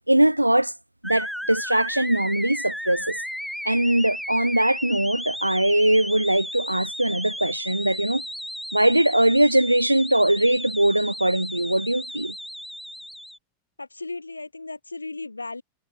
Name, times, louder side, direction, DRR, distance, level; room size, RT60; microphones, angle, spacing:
voice 1, 0.1-0.7 1.0-3.2 3.6-8.2 8.7-12.3, right 1 dB, 85° right, 0.9 m, -21 dB
sound 1, 1.0-13.4, equal, ahead, 1.1 m, -34 dB
voice 2, 13.8-15.6, left 3 dB, 80° left, 1.5 m, -35 dB
figure-of-eight pair, 90°, 0 cm